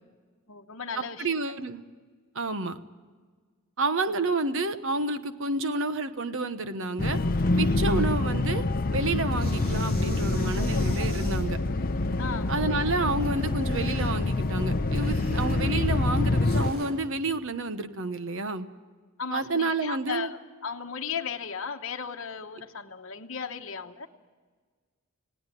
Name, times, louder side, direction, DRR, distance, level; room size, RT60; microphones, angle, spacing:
voice 1, 0.5-1.3 12.2-12.5 19.2-24.1, left 6 dB, 60° left, 3 dB, 1.1 m, -36 dB
voice 2, 1.2-1.8 2.3-2.8 3.8-7.2 7.6-8.6 8.9-11.6 12.5-18.7 19.3-20.3, right 3 dB, 60° right, 10 dB, 1.1 m, -29 dB
sound 1, 7.0-16.7, left 2 dB, 40° left, 0.7 m, -26 dB
sound 2, 8.1-8.4 8.8-11.4 13.1-16.9, right 1 dB, 45° right, 7.8 m, -45 dB
20.0 x 17.5 x 9.2 m, 1.5 s
head